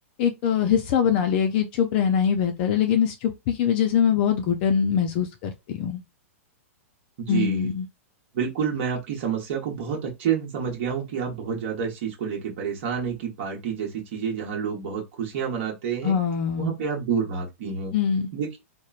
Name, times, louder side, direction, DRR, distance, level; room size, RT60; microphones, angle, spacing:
voice 1, 0.2-6.0 7.3-7.9 16.0-16.7 17.9-18.3, left 8 dB, 45° left, 0.4 m, -23 dB
voice 2, 7.2-7.7 8.3-16.2 16.6-17.9 18.3-18.6, right 7 dB, 55° right, 1.0 m, -29 dB
3.0 x 2.1 x 2.4 m
hypercardioid pair, 125°, 8 cm